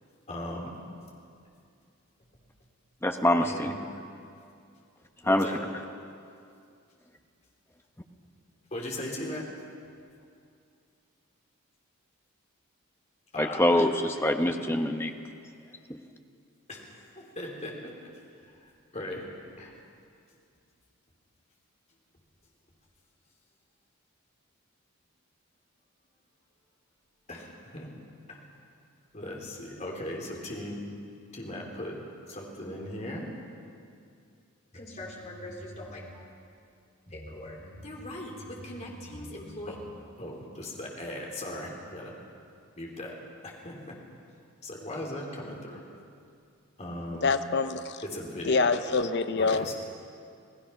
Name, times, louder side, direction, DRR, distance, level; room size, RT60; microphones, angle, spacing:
voice 1, 0.3-0.7 3.4-4.0 5.2-5.7 8.7-9.5 13.3-13.9 14.4-14.5 16.7-17.9 18.4-18.6 18.9-19.2 19.6-19.7 27.3-27.9 28.3-28.5 29.1-30.8 31.3-32.0 32.3-33.3 34.7-36.3 37.1-39.8 40.2-42.1 42.8-43.2 43.4-44.0 44.6-45.8 46.8-47.3 48.0-48.8 49.4-49.7, left 1 dB, 30° left, -2 dB, 3.7 m, -38 dB
voice 2, 3.0-3.7 5.3-5.5 13.4-15.1 15.9-16.0, left 1 dB, 10° left, 5 dB, 1.1 m, -25 dB
voice 3, 47.2-48.0 48.4-49.7, left 4 dB, 50° left, 10 dB, 0.7 m, -26 dB
28.5 x 17.5 x 5.9 m, 2.4 s
head